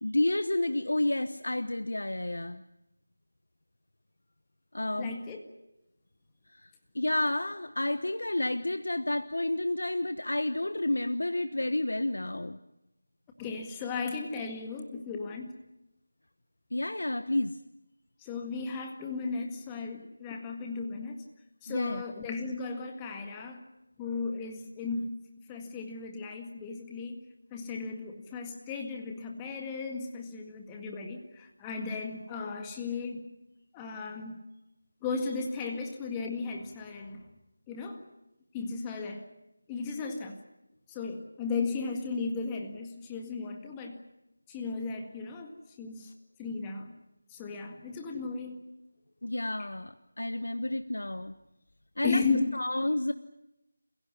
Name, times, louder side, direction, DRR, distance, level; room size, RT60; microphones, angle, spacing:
voice 1, 0.0-2.6 4.7-5.1 6.5-12.6 16.7-17.6 21.7-22.0 49.2-51.3 52.0-52.2 52.5-53.1, left 1 dB, 80° left, 11 dB, 1.0 m, -30 dB
voice 2, 5.0-5.4 13.4-15.5 18.2-21.2 21.6-23.6 24.0-25.2 25.5-33.3 33.7-34.4 35.0-37.2 37.7-38.0 38.5-39.2 39.7-40.4 40.9-44.0 44.5-45.5 45.8-46.1 46.4-46.9 47.3-48.7 52.0-52.5, left 4 dB, 10° left, 3 dB, 1.9 m, -35 dB
28.0 x 16.5 x 9.7 m, 0.91 s
figure-of-eight pair, 170°, 0 cm